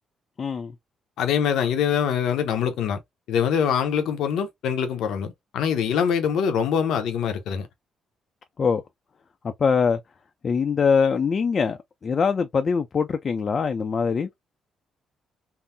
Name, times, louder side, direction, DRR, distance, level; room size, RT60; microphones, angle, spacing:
voice 1, 0.4-0.7 8.6-8.8 9.4-10.0 10.4-14.3, left 5 dB, 45° left, 0.4 m, -23 dB
voice 2, 1.2-3.0 3.3-7.7, left 8 dB, 80° left, 0.7 m, -24 dB
3.7 x 2.0 x 2.5 m
cardioid pair, 90°, 0 cm